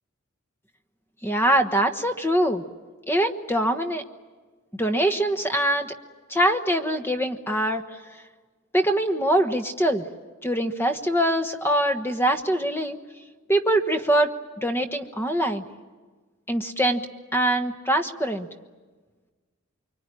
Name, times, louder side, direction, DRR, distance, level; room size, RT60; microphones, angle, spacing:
voice 1, 1.2-2.6 3.1-4.0 4.8-5.9 6.3-7.8 8.7-10.0 10.4-13.0 13.5-14.3 14.6-15.6 16.5-17.0 17.3-18.5, right 1 dB, 10° left, 7 dB, 1.2 m, -23 dB
24.5 x 24.5 x 9.9 m, 1.4 s
head